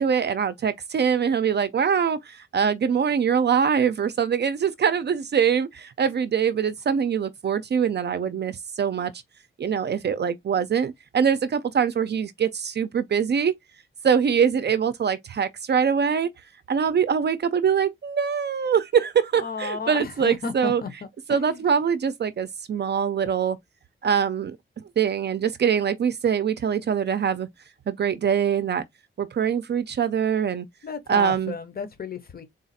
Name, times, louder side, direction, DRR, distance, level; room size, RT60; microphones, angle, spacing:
voice 1, 0.0-9.1 9.6-13.6 14.0-16.3 16.7-20.8 21.3-23.6 24.0-24.6 25.0-27.5 27.9-28.8 29.2-30.7 31.1-31.5, right 7 dB, 55° right, 0.4 m, -23 dB
voice 2, 19.3-21.6 30.8-32.4, left 4 dB, 45° left, 0.8 m, -33 dB
3.9 x 2.4 x 4.0 m
wide cardioid pair, 175°, 21 cm